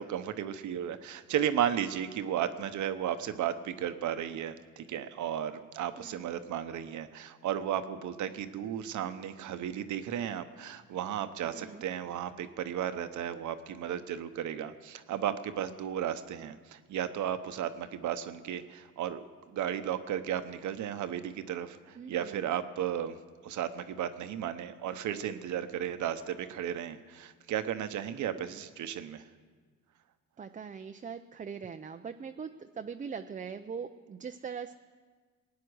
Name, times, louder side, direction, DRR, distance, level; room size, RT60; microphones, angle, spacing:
voice 1, 0.0-23.2 23.4-29.2, right 10 dB, 75° right, 10 dB, 0.9 m, -34 dB
voice 2, 6.0-6.5 11.4-11.8 22.0-22.5 28.4-28.5 30.4-34.7, right 6 dB, 25° right, 7 dB, 0.5 m, -42 dB
19.0 x 9.5 x 6.3 m, 1.5 s
cardioid pair, 90°, 30 cm